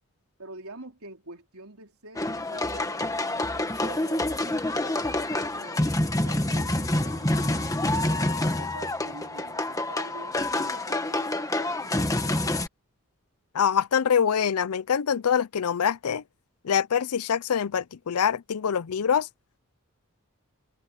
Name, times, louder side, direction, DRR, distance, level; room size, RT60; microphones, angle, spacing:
voice 1, 0.4-5.9 6.2-8.3 8.6-12.7, right 2 dB, 75° right, 4.2 m, -46 dB
sound 1, 2.2-12.7, left 1 dB, 15° left, 1.4 m, -27 dB
voice 2, 13.5-16.2 16.6-19.3, left 7 dB, 85° left, 0.5 m, -24 dB
head